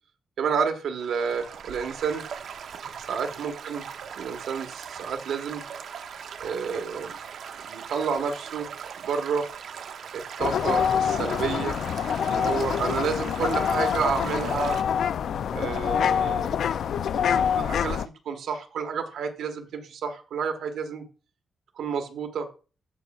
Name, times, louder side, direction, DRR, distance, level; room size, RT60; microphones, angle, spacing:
voice 1, 0.4-2.2 3.0-3.8 4.2-5.6 6.4-7.2 7.6-8.7 9.0-9.5 10.1-11.8 12.3-14.8 15.5-16.5 17.1-21.0 21.8-22.5, right 6 dB, 85° right, 6 dB, 1.5 m, -30 dB
Stream / Gurgling / Trickle dribble, 1.0-14.8, right 7 dB, 65° right, 0.7 m, -39 dB
sound 1, 10.4-18.1, left 8 dB, 65° left, 0.3 m, -26 dB
15.0 x 5.3 x 2.4 m, 0.34 s
wide cardioid pair, 170°, 0 cm